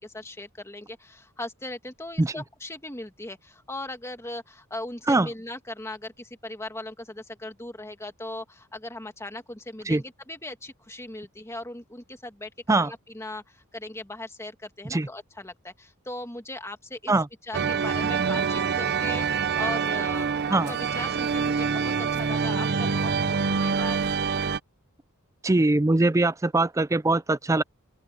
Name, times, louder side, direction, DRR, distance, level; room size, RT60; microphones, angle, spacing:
voice 1, 0.0-12.5 12.8-17.1 17.5-24.2, left 2 dB, 10° left, 2.0 m, -38 dB
sound 1, 17.5-24.6, right 5 dB, 50° right, 0.7 m, -26 dB
voice 2, 25.4-27.6, right 2 dB, 15° right, 0.4 m, -22 dB
open air
head